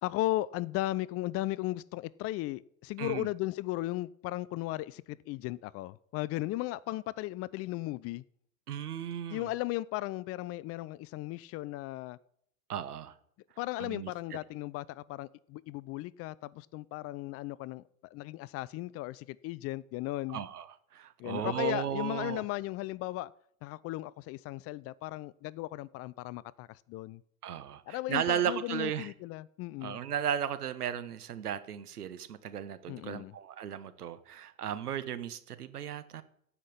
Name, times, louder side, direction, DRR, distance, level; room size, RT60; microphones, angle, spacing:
voice 1, 0.0-8.2 9.3-12.2 13.6-17.8 18.1-20.4 21.2-23.3 23.6-27.2 27.9-30.0 32.9-33.3, left 17 dB, 35° left, 0.4 m, -36 dB
voice 2, 3.0-3.3 8.7-9.5 12.7-13.1 13.8-14.4 20.3-22.4 27.4-29.1 29.8-36.2, right 9 dB, 85° right, 1.3 m, -35 dB
15.5 x 5.9 x 9.8 m
hypercardioid pair, 95°, 45 cm